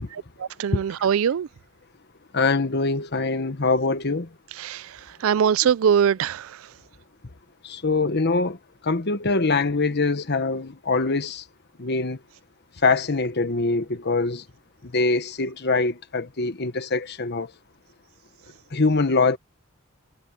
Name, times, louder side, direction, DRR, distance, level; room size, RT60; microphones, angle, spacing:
voice 1, 0.1-1.5 4.6-6.6, right 8 dB, 65° right, 0.4 m, -23 dB
voice 2, 2.3-4.3 7.6-8.6 8.8-11.4 11.8-12.2 12.8-14.4 14.9-17.5 18.7-19.4, left 3 dB, 50° left, 1.3 m, -23 dB
head